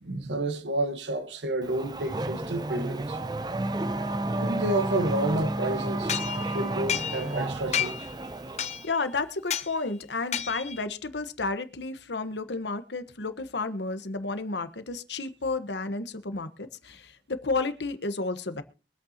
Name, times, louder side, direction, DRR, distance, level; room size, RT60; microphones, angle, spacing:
voice 1, 0.0-3.2 4.4-8.0, right 1 dB, 90° right, 1.3 m, -30 dB
Race car auto racing / Accelerating revving vroom, 1.6-8.9, right 2 dB, 25° right, 0.6 m, -31 dB
sound 1, 6.1-7.4 7.7-8.1 8.6-9.0 9.5-9.7 10.3-10.8, left 9 dB, 40° left, 0.7 m, -31 dB
voice 2, 8.8-18.6, left 3 dB, 80° left, 1.2 m, -32 dB
24.0 x 8.5 x 2.9 m
head